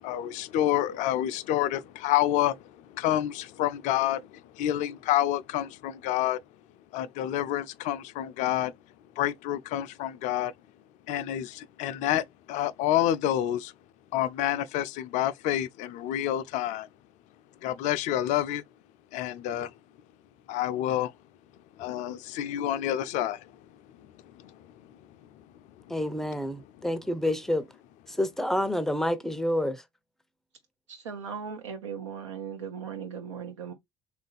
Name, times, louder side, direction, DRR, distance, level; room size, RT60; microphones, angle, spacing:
voice 1, 0.0-6.4 6.9-8.7 9.2-10.5 11.1-13.7 14.1-16.9 17.6-18.6 19.1-19.7 20.5-21.1 21.8-23.5 24.3-24.9 26.2-26.6, left 12 dB, 55° left, 0.4 m, -28 dB
voice 2, 25.9-27.7 28.2-29.8, left 1 dB, 5° left, 0.5 m, -28 dB
voice 3, 30.9-33.7, right 7 dB, 80° right, 0.7 m, -38 dB
3.3 x 2.5 x 3.9 m
figure-of-eight pair, 60°, 15 cm